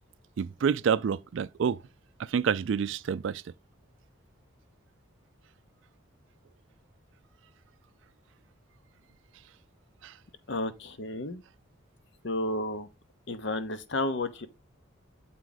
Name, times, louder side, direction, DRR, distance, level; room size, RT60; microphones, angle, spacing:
voice 1, 0.4-1.8 2.2-3.4 10.0-10.1, right 7 dB, 65° right, 0.3 m, -28 dB
voice 2, 10.5-11.4 12.2-12.9 13.3-14.5, left 1 dB, 60° left, 0.9 m, -32 dB
7.4 x 4.7 x 3.9 m
head